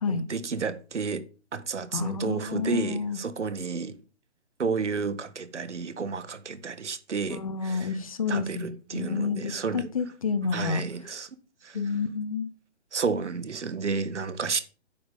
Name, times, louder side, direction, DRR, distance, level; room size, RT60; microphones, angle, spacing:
voice 1, 0.1-1.2 1.5-4.0 4.6-7.9 8.3-9.9 10.5-11.3 11.6-11.9 12.9-14.6, right 5 dB, 80° right, 1.7 m, -31 dB
voice 2, 1.9-3.2 7.3-10.8 11.7-12.5, left 5 dB, 30° left, 0.8 m, -29 dB
9.3 x 7.2 x 5.5 m
hypercardioid pair, 165°, 34 cm